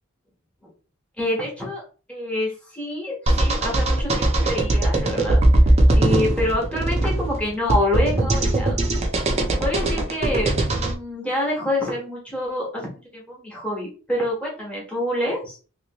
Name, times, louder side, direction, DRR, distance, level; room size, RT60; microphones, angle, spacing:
voice 1, 1.2-1.8 2.1-8.8 9.5-15.6, left 1 dB, 5° left, -3 dB, 1.2 m, -27 dB
sound 1, 3.3-10.9, right 1 dB, 30° right, 0.5 m, -20 dB
3.1 x 3.0 x 2.9 m, 0.37 s
head